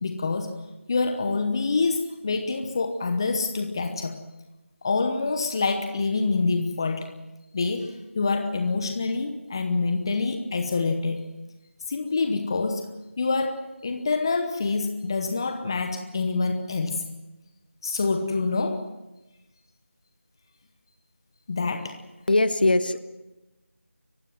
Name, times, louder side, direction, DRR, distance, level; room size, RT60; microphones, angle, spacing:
voice 1, 0.0-0.6 0.9-4.2 4.8-7.2 7.5-11.2 11.9-12.9 13.2-17.1 17.8-18.9 21.5-22.0, left 4 dB, 20° left, 7 dB, 1.0 m, -26 dB
voice 2, 22.3-23.0, left 2 dB, 45° left, 12 dB, 1.2 m, -20 dB
29.5 x 16.0 x 7.7 m, 1.0 s
figure-of-eight pair, 170°, 7 cm